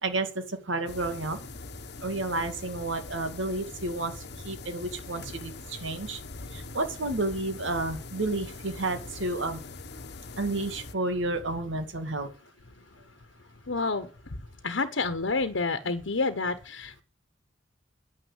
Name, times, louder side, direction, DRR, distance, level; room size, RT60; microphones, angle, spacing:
voice 1, 0.0-1.4 2.0-6.2 6.5-9.6 10.4-12.3, right 2 dB, 85° right, 8 dB, 2.2 m, -31 dB
sound 1, 0.9-10.9, left 3 dB, 60° left, 1.1 m, -43 dB
voice 2, 13.7-14.4 14.6-17.0, left 3 dB, 80° left, 9 dB, 1.2 m, -29 dB
10.0 x 9.4 x 7.4 m, 0.36 s
head